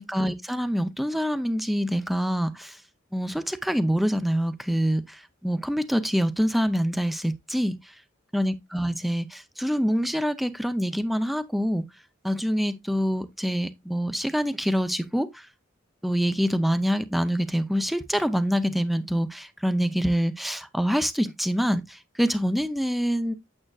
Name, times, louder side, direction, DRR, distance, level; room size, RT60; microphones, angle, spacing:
voice 1, 0.0-2.8 3.1-7.9 8.3-11.8 12.2-15.5 16.0-23.3, equal, ahead, 0.5 m, -26 dB
8.8 x 7.7 x 2.3 m
head